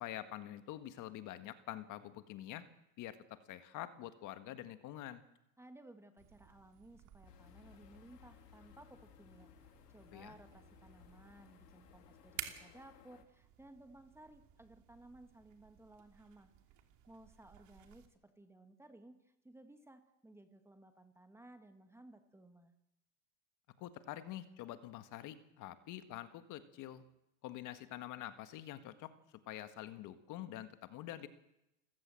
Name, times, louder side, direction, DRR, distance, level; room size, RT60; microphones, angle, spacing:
voice 1, 0.0-2.6 3.0-5.2 10.1-10.3 23.8-27.0 27.4-29.1 29.4-31.3, left 13 dB, 40° left, 10 dB, 1.7 m, -46 dB
voice 2, 5.6-16.5 17.1-22.7, right 1 dB, 5° right, 8 dB, 1.6 m, -59 dB
sound 1, 6.2-18.1, right 11 dB, 40° right, 2.8 m, -55 dB
sound 2, 7.2-13.2, left 11 dB, 85° left, 3.0 m, -61 dB
29.0 x 16.0 x 7.7 m, 0.89 s
supercardioid pair, 135°, 46 cm